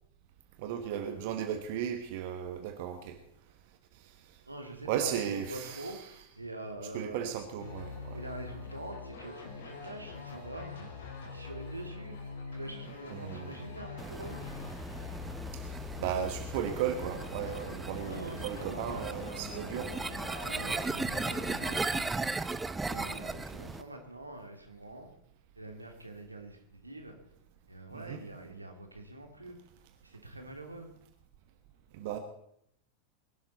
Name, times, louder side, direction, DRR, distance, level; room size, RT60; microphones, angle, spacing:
voice 1, 0.6-3.2 4.0-4.3 4.9-6.0 6.9-8.2 13.1-13.5 15.5-19.9 27.9-28.2 31.9-32.2, right 9 dB, 50° right, 7 dB, 1.4 m, -36 dB
voice 2, 4.5-7.3 8.1-10.9 11.3-14.4 18.1-19.8 20.4-22.3 22.9-25.1 25.6-27.1 27.7-29.6 30.0-30.9, right 2 dB, 85° right, 4 dB, 2.5 m, -45 dB
sound 1, 7.6-21.8, left 5 dB, 60° left, 3.3 m, -44 dB
sound 2, 14.0-23.8, right 3 dB, 10° right, 0.7 m, -37 dB
22.5 x 11.5 x 4.2 m, 0.74 s
figure-of-eight pair, 90°, 0 cm